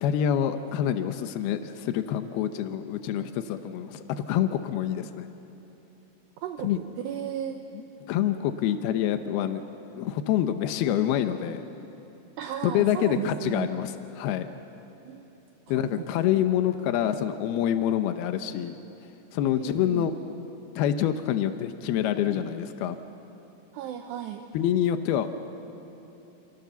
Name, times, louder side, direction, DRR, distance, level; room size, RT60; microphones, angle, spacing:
voice 1, 0.0-5.3 6.6-6.8 8.1-9.6 10.0-11.6 12.6-14.5 15.7-18.8 19.3-20.1 20.8-23.0 24.5-25.3, left 10 dB, 90° left, 8 dB, 2.2 m, -26 dB
voice 2, 6.4-7.6 12.4-13.7 15.0-15.3 15.7-16.2 19.5-20.1 23.7-24.4, right 10 dB, 75° right, 5 dB, 2.7 m, -35 dB
29.0 x 27.0 x 7.0 m, 3.0 s
omnidirectional pair, 5.8 m